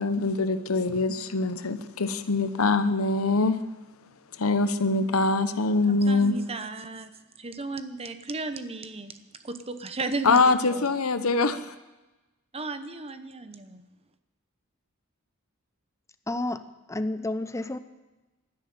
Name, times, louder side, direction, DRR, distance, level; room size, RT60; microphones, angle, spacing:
voice 1, 0.0-3.6 4.4-6.4 10.2-11.7, left 3 dB, 90° left, 12 dB, 0.9 m, -24 dB
voice 2, 5.9-7.1 7.4-9.2 9.4-10.9 11.5-11.6 12.5-13.8, right 3 dB, 30° right, 10 dB, 0.9 m, -35 dB
voice 3, 16.3-16.6 16.9-17.8, left 2 dB, 15° left, 10 dB, 0.7 m, -30 dB
12.5 x 10.5 x 9.4 m, 1.1 s
head